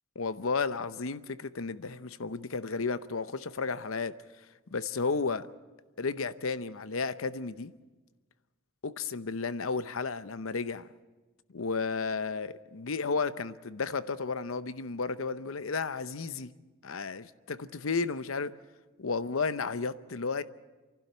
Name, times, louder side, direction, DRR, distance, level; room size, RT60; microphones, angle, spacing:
voice 1, 0.2-4.1 4.7-5.4 6.0-7.7 8.8-10.9 11.5-16.5 16.8-18.5 19.0-20.4, left 4 dB, 85° left, 0.8 m, -33 dB
28.5 x 12.0 x 9.0 m
head